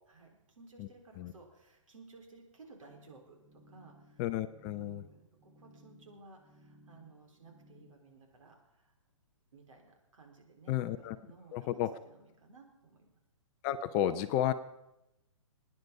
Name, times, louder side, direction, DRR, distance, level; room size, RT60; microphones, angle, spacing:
voice 1, 0.1-4.2 4.6-8.9 9.5-13.1, right 3 dB, 80° right, 2 dB, 4.0 m, -57 dB
sound 1, 2.9-7.9, equal, 20° right, 1.4 m, -61 dB
voice 2, 4.2-5.0 10.7-11.2 11.5-12.0 13.6-14.5, left 11 dB, 20° left, 10 dB, 0.4 m, -32 dB
22.5 x 9.7 x 5.3 m, 0.91 s
hypercardioid pair, 155°, 17 cm